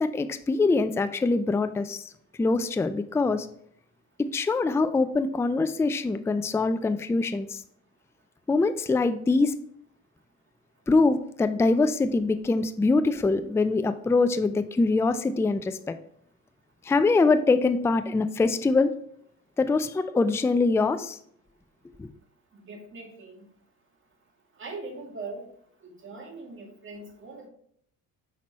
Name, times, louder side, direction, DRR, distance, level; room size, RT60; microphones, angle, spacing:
voice 1, 0.0-2.0 2.4-3.5 4.2-7.6 8.5-9.5 10.9-15.9 16.8-18.9 19.6-21.2 22.0-22.1, left 3 dB, 10° left, 11 dB, 0.4 m, -24 dB
voice 2, 22.5-23.4 24.6-25.4 25.8-27.5, right 3 dB, 40° right, 0 dB, 2.3 m, -41 dB
6.0 x 5.8 x 2.9 m, 0.66 s
supercardioid pair, 80°, 32 cm